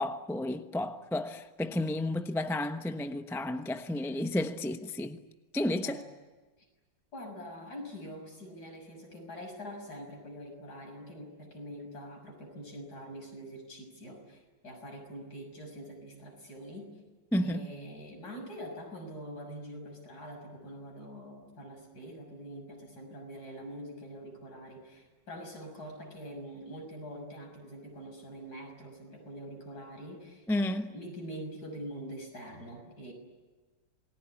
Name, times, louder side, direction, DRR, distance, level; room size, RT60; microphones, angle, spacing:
voice 1, 0.0-5.2 5.5-6.0 17.3-17.7 30.5-30.9, left 1 dB, ahead, 0.6 m, -32 dB
voice 2, 7.1-16.9 17.4-30.5 30.9-33.1, equal, 55° left, 7.0 m, -44 dB
28.0 x 20.5 x 9.8 m
omnidirectional pair, 2.0 m